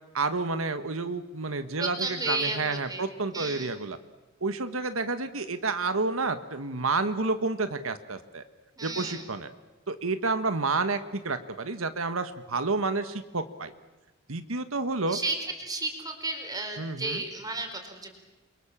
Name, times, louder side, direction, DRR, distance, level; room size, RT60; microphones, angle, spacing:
voice 1, 0.1-4.0 4.4-8.4 8.8-9.5 9.9-13.7 14.3-15.2 16.8-17.2, right 3 dB, 85° right, 10 dB, 1.5 m, -30 dB
voice 2, 1.8-3.8 8.8-9.3 15.1-18.1, right 2 dB, 20° right, 5 dB, 4.6 m, -33 dB
29.0 x 23.5 x 7.4 m, 1.1 s
head